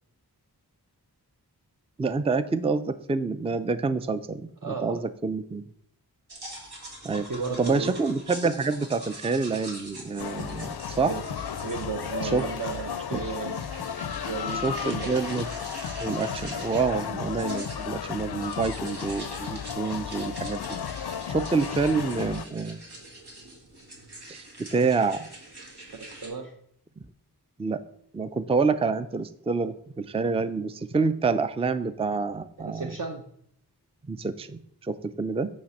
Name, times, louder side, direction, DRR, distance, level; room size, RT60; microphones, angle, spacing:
voice 1, 2.0-5.6 7.0-7.3 7.6-11.1 12.2-12.4 13.1-13.2 14.6-15.5 16.0-20.6 21.0-22.8 24.3-25.3 27.6-27.8 28.1-32.9 34.1-35.5, right 4 dB, 15° right, 12 dB, 0.4 m, -27 dB
voice 2, 4.6-5.0 7.3-8.0 11.0-11.2 11.6-13.6 14.2-15.1 19.7-20.0 25.9-26.5 32.6-33.2, right 4 dB, 55° right, 2 dB, 0.8 m, -34 dB
sound 1, 6.3-26.3, right 1 dB, 75° right, 2.0 m, -44 dB
sound 2, 10.2-22.4, left 8 dB, 75° left, 0.5 m, -34 dB
8.6 x 3.3 x 6.3 m, 0.68 s
wide cardioid pair, 55°, 40 cm